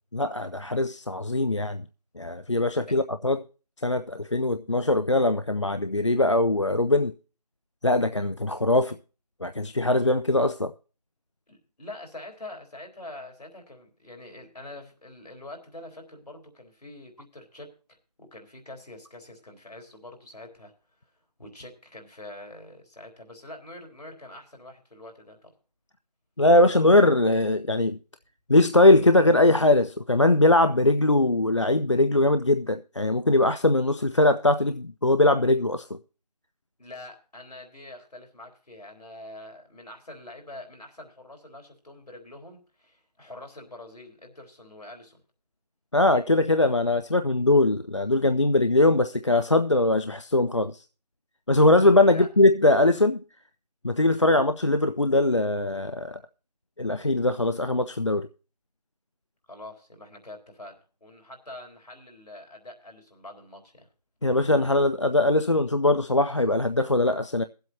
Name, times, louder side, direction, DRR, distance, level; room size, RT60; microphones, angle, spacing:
voice 1, 0.1-1.8 2.2-3.4 3.8-7.1 7.8-9.0 9.4-10.7 26.4-28.0 28.5-36.0 45.9-50.8 51.5-53.2 53.8-56.2 56.8-58.3 64.2-67.4, left 2 dB, 45° left, 0.4 m, -21 dB
voice 2, 11.5-20.7 21.4-25.5 36.8-45.2 52.1-52.3 59.5-60.8 61.0-63.9, left 1 dB, 75° left, 3.8 m, -45 dB
22.0 x 7.9 x 2.8 m
figure-of-eight pair, 175°, 21 cm